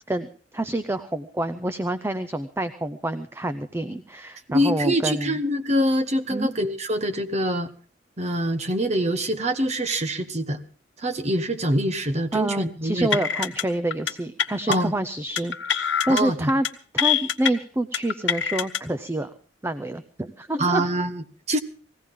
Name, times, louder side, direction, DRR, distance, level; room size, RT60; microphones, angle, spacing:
voice 1, 0.1-5.4 6.3-6.5 12.3-16.7 16.9-19.3 19.6-20.8, right 1 dB, 15° right, 10 dB, 0.6 m, -27 dB
voice 2, 4.5-7.7 8.2-10.6 11.0-13.1 14.7-14.9 16.1-16.5 20.6-21.6, equal, 35° right, 8 dB, 1.1 m, -24 dB
sound 1, 13.1-13.6 13.9-14.1 14.4-14.8 15.4-16.2 16.5-16.7 17.0-17.5 17.9-18.8, left 9 dB, 80° left, 1.0 m, -24 dB
19.5 x 16.0 x 3.7 m, 0.41 s
head